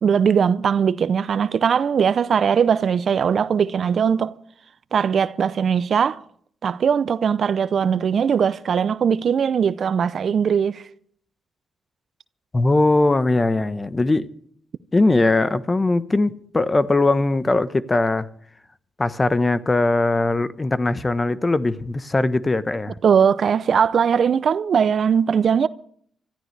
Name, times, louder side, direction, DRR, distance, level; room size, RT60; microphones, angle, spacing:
voice 1, 0.0-4.4 4.9-6.2 6.6-10.8 23.0-25.7, right 7 dB, 60° right, 0.5 m, -20 dB
voice 2, 12.5-14.3 14.9-18.3 19.0-22.9, left 2 dB, 30° left, 1.0 m, -20 dB
25.5 x 13.5 x 3.3 m
supercardioid pair, 50°, 0 cm